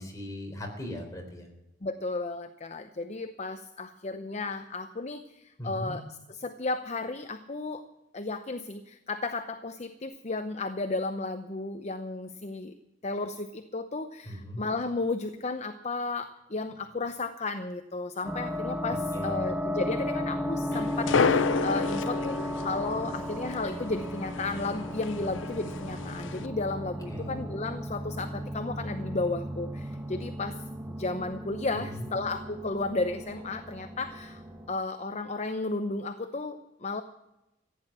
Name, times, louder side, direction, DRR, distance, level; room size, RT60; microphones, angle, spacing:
voice 1, 0.0-1.5 5.6-6.0 14.3-14.6 19.1-19.4 27.1-27.4 31.7-32.1, equal, 20° left, 1 dB, 3.9 m, -38 dB
voice 2, 1.8-7.8 8.1-12.7 13.0-30.6 31.0-37.0, left 3 dB, 35° left, 9 dB, 0.7 m, -34 dB
sound 1, 18.2-34.7, left 1 dB, 5° right, 1.1 m, -35 dB
sound 2, 20.7-26.5, left 5 dB, 90° left, 0.6 m, -31 dB
15.5 x 10.0 x 7.4 m, 0.94 s
head